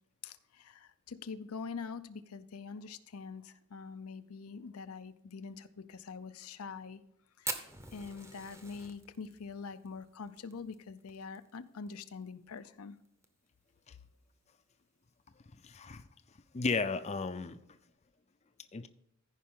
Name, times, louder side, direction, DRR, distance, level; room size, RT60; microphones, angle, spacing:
voice 1, 0.2-7.0 7.4-13.0, left 5 dB, 90° left, 11 dB, 0.6 m, -45 dB
Fire, 7.4-12.0 12.2-12.3 12.6-12.7 13.0-13.5 14.0-14.1 15.1-15.3, right 2 dB, 15° right, 0.8 m, -43 dB
voice 2, 15.6-16.0 16.5-17.6 18.7-18.9, left 4 dB, 30° left, 10 dB, 0.5 m, -34 dB
14.5 x 5.2 x 3.7 m, 0.78 s
head